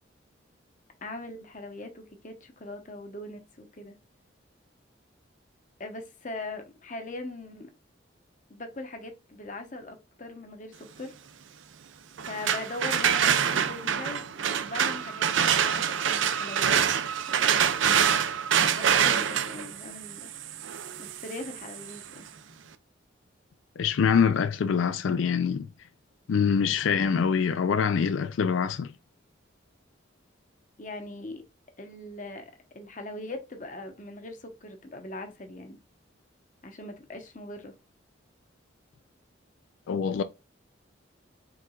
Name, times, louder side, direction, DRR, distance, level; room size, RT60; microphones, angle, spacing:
voice 1, 1.0-4.0 5.8-7.7 8.5-11.1 12.3-17.0 17.3-18.1 18.6-20.3 21.0-22.2 30.8-31.4 31.8-35.8 36.6-37.7, left 2 dB, 40° left, 0.9 m, -40 dB
sound 1, 12.2-22.0, right 8 dB, 80° right, 0.5 m, -26 dB
voice 2, 23.8-25.7 26.3-28.9 39.9-40.2, left 6 dB, 85° left, 0.4 m, -24 dB
4.6 x 3.7 x 2.3 m
head